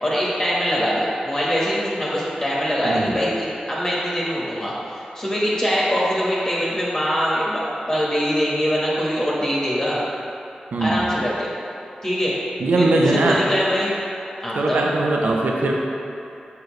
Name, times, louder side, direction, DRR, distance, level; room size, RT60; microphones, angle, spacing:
voice 1, 0.0-7.6 7.9-10.0 10.8-11.5 12.0-12.4 12.7-13.9 14.4-14.8, equal, 25° left, -7 dB, 1.4 m, -23 dB
voice 2, 2.8-3.2 10.7-11.1 12.6-13.4 14.5-15.8, right 2 dB, 90° right, -1 dB, 0.6 m, -20 dB
6.7 x 6.5 x 3.2 m, 2.7 s
wide cardioid pair, 80°, 3 cm